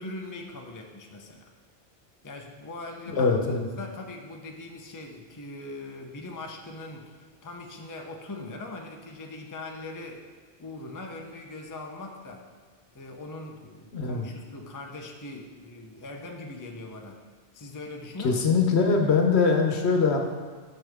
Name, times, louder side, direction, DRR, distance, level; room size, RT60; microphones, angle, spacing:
voice 1, 0.0-1.5 2.2-10.2 10.6-12.5 12.9-17.2 17.5-18.6 19.0-19.2, left 2 dB, 20° left, 2 dB, 0.6 m, -41 dB
voice 2, 3.1-3.7 13.9-14.3 18.2-20.2, left 4 dB, 70° left, 3 dB, 1.2 m, -22 dB
10.0 x 6.4 x 3.5 m, 1.5 s
omnidirectional pair, 1.1 m